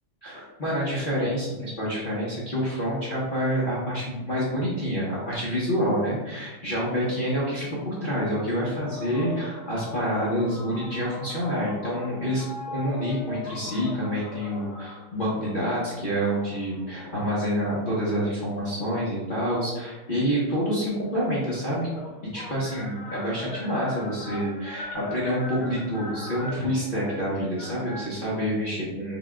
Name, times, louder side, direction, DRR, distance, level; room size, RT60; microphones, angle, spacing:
voice 1, 0.2-12.4 12.7-21.9 22.3-29.2, equal, 80° left, -9 dB, 0.4 m, -27 dB
sound 1, 8.6-17.4 18.1-19.8 21.0-21.1 21.2-28.0, left 2 dB, 65° left, 1.1 m, -41 dB
5.6 x 2.3 x 3.6 m, 1.1 s
omnidirectional pair, 2.4 m